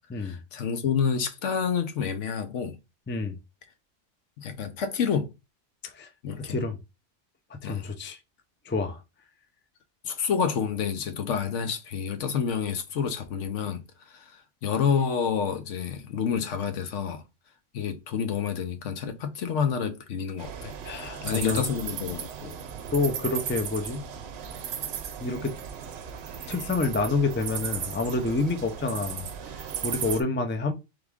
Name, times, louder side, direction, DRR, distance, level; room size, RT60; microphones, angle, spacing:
voice 1, 0.2-2.8 4.4-5.3 6.2-6.6 7.6-7.9 10.0-13.8 14.1-17.2 17.7-20.7 21.2-22.6, left 7 dB, 75° left, 1.1 m, -29 dB
voice 2, 6.4-6.8 7.5-8.2 8.6-9.0 20.8-21.6 22.9-24.0 25.2-25.6 26.5-30.7, left 3 dB, 15° left, 0.3 m, -28 dB
sound 1, 20.4-30.2, right 8 dB, 65° right, 0.8 m, -36 dB
3.6 x 3.5 x 3.5 m
omnidirectional pair, 1.3 m